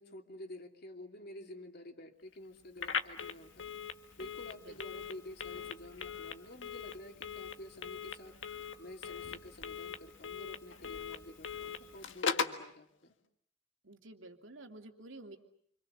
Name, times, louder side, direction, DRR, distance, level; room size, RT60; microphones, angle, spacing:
voice 1, 0.0-13.2, left 1 dB, 50° left, 4 dB, 3.0 m, -50 dB
Telephone, 2.8-12.6, left 6 dB, 70° left, 1.7 m, -40 dB
voice 2, 13.8-15.4, right 2 dB, 70° right, 5 dB, 2.8 m, -51 dB
29.0 x 26.5 x 6.8 m, 0.69 s
head